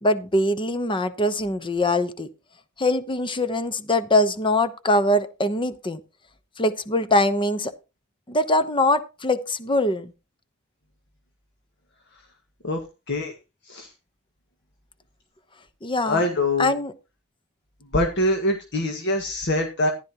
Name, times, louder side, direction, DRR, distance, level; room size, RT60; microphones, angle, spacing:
voice 1, 0.0-2.3 2.8-6.0 6.6-7.7 8.3-10.1 15.8-16.2 16.6-16.9, left 1 dB, 25° left, 12 dB, 0.9 m, -22 dB
voice 2, 16.1-16.7 17.9-19.9, left 1 dB, 55° left, 4 dB, 1.7 m, -24 dB
14.5 x 11.5 x 2.9 m, 0.28 s
head